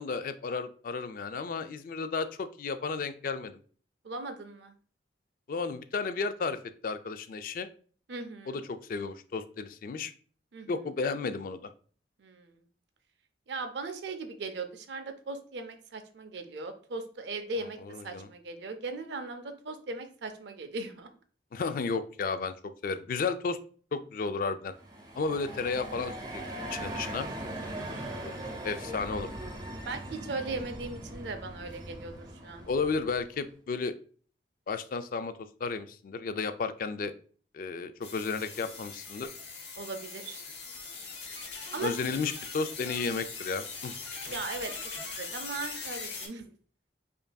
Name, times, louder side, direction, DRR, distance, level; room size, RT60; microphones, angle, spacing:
voice 1, 0.0-3.6 5.5-7.7 8.5-10.1 10.7-11.7 17.8-18.3 21.5-23.6 23.9-24.7 25.2-26.4 26.7-27.3 28.2-28.3 28.6-29.3 32.7-33.9 34.7-35.3 35.6-37.1 37.5-39.3 41.8-44.0, left 4 dB, 50° left, 10 dB, 0.3 m, -33 dB
voice 2, 4.0-4.7 8.1-8.7 10.5-10.7 12.2-12.6 13.5-17.8 18.0-21.1 27.7-28.5 29.9-32.1 32.4-32.6 39.8-40.4 41.7-41.9 44.3-44.7 45.0-46.5, right 3 dB, 75° right, 7 dB, 0.5 m, -38 dB
sound 1, 24.7-33.4, right 1 dB, 25° right, 0.7 m, -40 dB
sound 2, 38.0-46.3, left 4 dB, 70° left, 1.0 m, -41 dB
5.2 x 2.6 x 2.3 m, 0.43 s
head